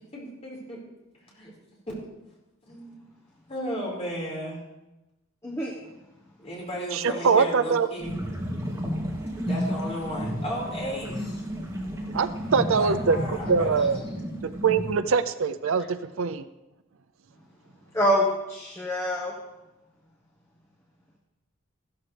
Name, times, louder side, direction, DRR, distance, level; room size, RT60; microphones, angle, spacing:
voice 1, 0.1-0.8 1.2-1.5 1.9-2.0 2.7-3.1 3.5-4.6 6.4-8.1 9.4-11.5 12.7-14.0, equal, 30° left, -5 dB, 4.8 m, -34 dB
voice 2, 5.4-5.7 17.9-19.3, equal, 15° left, -2 dB, 1.3 m, -25 dB
voice 3, 6.9-7.9 12.1-14.0 14.4-16.5, right 5 dB, 65° right, 13 dB, 0.5 m, -23 dB
sound 1, 8.0-15.0, equal, 15° right, 2.6 m, -32 dB
14.5 x 13.5 x 3.4 m, 1.0 s
head